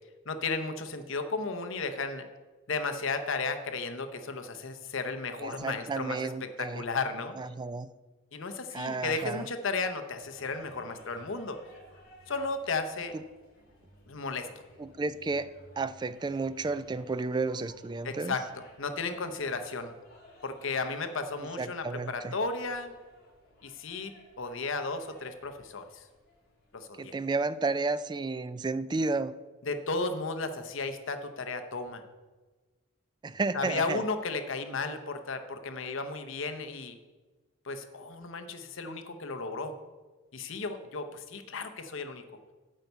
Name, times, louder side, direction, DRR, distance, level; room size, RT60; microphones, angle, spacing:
voice 1, 0.3-2.3 2.7-7.4 8.3-11.6 12.3-13.1 14.1-14.5 18.0-18.5 18.8-19.9 20.4-22.9 23.6-24.1 24.4-26.0 26.7-27.1 29.7-32.0 33.5-37.0 37.6-39.8 40.3-42.2, left 3 dB, 65° left, 8 dB, 0.8 m, -34 dB
voice 2, 5.4-6.8 7.4-7.9 8.7-9.5 13.1-13.2 14.8-18.4 21.4-22.4 27.0-29.3 33.2-34.0, right 3 dB, 20° right, 14 dB, 0.3 m, -32 dB
sound 1, 10.2-26.8, equal, 45° left, 3.8 m, -57 dB
9.0 x 5.4 x 8.0 m, 1.3 s
head